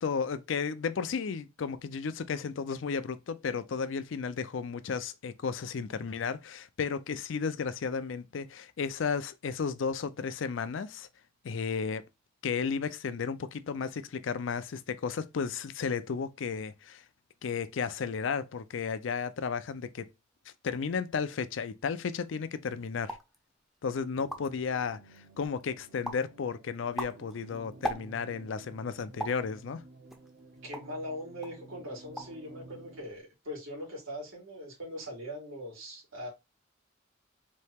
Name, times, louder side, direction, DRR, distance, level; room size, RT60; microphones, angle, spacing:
voice 1, 0.0-11.1 11.4-12.0 12.4-17.0 17.4-20.1 20.6-23.2 23.8-25.0 25.4-29.8, left 5 dB, 65° left, 0.4 m, -33 dB
sound 1, 23.0-23.4 23.9-24.0 24.1-24.7 25.2-25.6 26.0-26.3 26.7-28.4 29.2-29.5 30.1-31.0 31.4-31.6 31.9-32.4 32.7-33.2, equal, ahead, 0.5 m, -39 dB
sound 2, 24.1-33.0, right 2 dB, 55° right, 0.7 m, -53 dB
voice 2, 30.6-36.3, equal, 90° right, 2.6 m, -41 dB
4.3 x 2.8 x 3.4 m
head